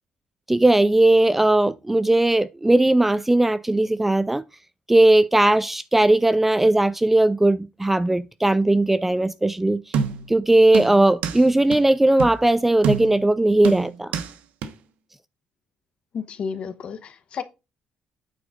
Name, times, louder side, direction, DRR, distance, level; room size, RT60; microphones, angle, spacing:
voice 1, 0.5-4.4 4.9-9.8 10.3-14.1, right 2 dB, 10° right, 0.3 m, -18 dB
sound 1, 9.9-10.4 10.7-11.4 11.7-11.8 12.2-12.4 12.8-13.3 13.6-14.3 14.6-14.7, right 6 dB, 80° right, 1.1 m, -26 dB
voice 2, 16.1-17.4, left 6 dB, 50° left, 1.1 m, -32 dB
9.0 x 3.9 x 5.0 m
cardioid pair, 125°, 2 cm